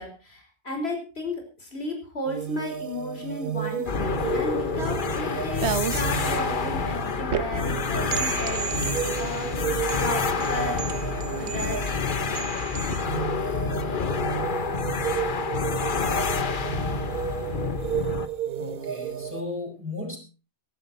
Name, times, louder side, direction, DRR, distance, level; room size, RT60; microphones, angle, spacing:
voice 1, 0.0-8.7 9.2-9.7 10.0-10.9 11.4-12.0, left 2 dB, 70° left, 3 dB, 4.9 m, -34 dB
sound 1, 2.3-19.4, right 8 dB, 55° right, 1.0 m, -33 dB
sound 2, 3.9-18.3, left 5 dB, 50° left, 1.1 m, -28 dB
sound 3, 4.3-13.1, right 7 dB, 85° right, 1.3 m, -34 dB
voice 2, 18.6-20.2, left 2 dB, 10° right, 0 dB, 5.2 m, -35 dB
17.0 x 12.5 x 4.4 m, 0.35 s
omnidirectional pair, 1.1 m